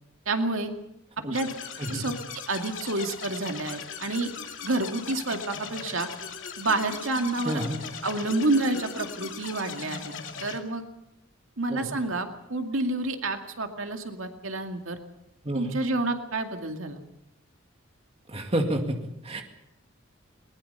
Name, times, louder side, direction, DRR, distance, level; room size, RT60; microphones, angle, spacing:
voice 1, 0.3-0.7 1.3-1.5 1.9-2.1 2.5-4.3 4.6-6.1 6.6-7.6 8.0-10.1 10.4-10.8 11.6-15.0 15.5-17.0, right 2 dB, 80° right, 5 dB, 2.3 m, -29 dB
sound 1, 1.3-10.6, left 6 dB, 65° left, 2.6 m, -39 dB
voice 2, 1.8-2.1 7.4-7.8 11.7-11.9 15.4-15.8 18.3-19.4, right 1 dB, 30° right, 4 dB, 2.2 m, -30 dB
21.0 x 20.5 x 6.9 m, 0.88 s
head